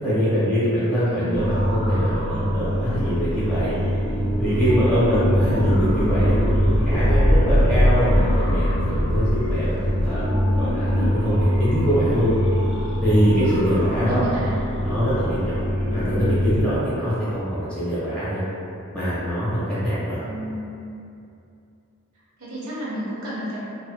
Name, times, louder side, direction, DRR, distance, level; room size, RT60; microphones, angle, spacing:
voice 1, 0.0-3.7 4.4-6.4 6.8-12.3 13.0-14.3 14.8-18.4 18.9-20.2, equal, 5° left, -11 dB, 0.7 m, -23 dB
voice 2, 1.1-1.5 12.0-12.4 13.9-14.5 20.2-20.7 22.4-23.6, right 1 dB, 70° right, -8 dB, 0.7 m, -32 dB
sound 1, 1.3-16.6, equal, 25° left, 0.4 m, -22 dB
2.4 x 2.1 x 2.4 m, 2.6 s
head